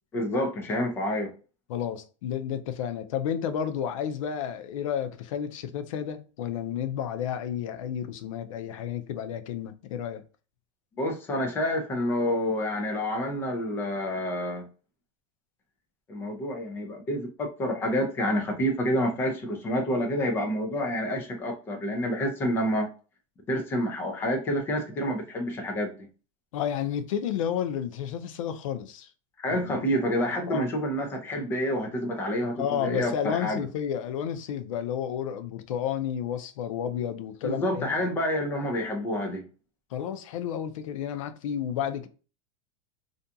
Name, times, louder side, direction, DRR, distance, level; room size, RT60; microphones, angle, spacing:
voice 1, 0.1-1.3 10.9-14.6 16.1-22.9 23.5-25.9 29.4-33.7 37.4-39.5, equal, 15° left, 0.4 m, -28 dB
voice 2, 1.7-10.2 26.5-29.1 29.5-29.9 30.5-30.6 32.6-37.9 39.9-42.1, left 9 dB, 85° left, 0.5 m, -31 dB
2.5 x 2.2 x 2.6 m
supercardioid pair, 180°, 16 cm